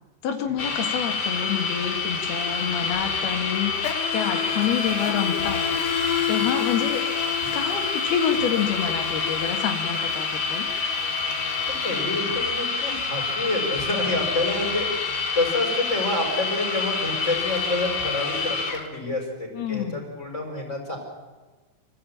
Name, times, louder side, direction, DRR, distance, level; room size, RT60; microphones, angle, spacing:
voice 1, 0.2-5.6 6.3-7.0 7.5-10.7 19.5-20.0, left 8 dB, 80° left, 4 dB, 3.8 m, -27 dB
sound 1, 0.6-18.9, left 4 dB, 40° left, 1.4 m, -27 dB
Insect, 1.1-1.3 1.6-12.6, left 9 dB, 65° left, 2.7 m, -32 dB
voice 2, 11.7-21.0, left 2 dB, 15° left, 0 dB, 5.3 m, -28 dB
26.5 x 15.0 x 8.8 m, 1.3 s
omnidirectional pair, 4.5 m